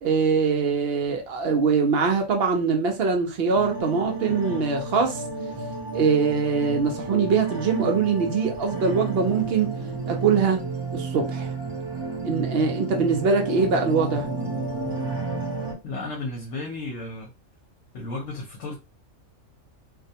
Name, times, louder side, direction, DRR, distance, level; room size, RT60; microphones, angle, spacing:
voice 1, 0.0-5.2 5.9-9.7 10.1-10.6 10.9-11.5 12.2-14.3, right 5 dB, 60° right, 0.7 m, -23 dB
sound 1, 3.5-15.7, right 3 dB, 40° right, 0.3 m, -31 dB
voice 2, 15.8-17.3 17.9-18.8, left 2 dB, 65° left, 0.9 m, -33 dB
2.5 x 2.2 x 2.7 m
omnidirectional pair, 1.4 m